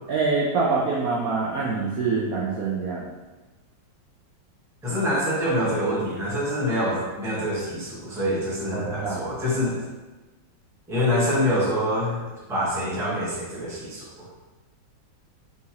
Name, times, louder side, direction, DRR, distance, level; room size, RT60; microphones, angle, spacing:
voice 1, 0.1-3.0 8.7-9.2, right 4 dB, 70° right, -4 dB, 0.9 m, -25 dB
voice 2, 4.8-9.8 10.9-12.2 12.5-14.2, equal, ahead, -8 dB, 0.8 m, -25 dB
4.3 x 3.6 x 2.9 m, 1.2 s
omnidirectional pair, 2.1 m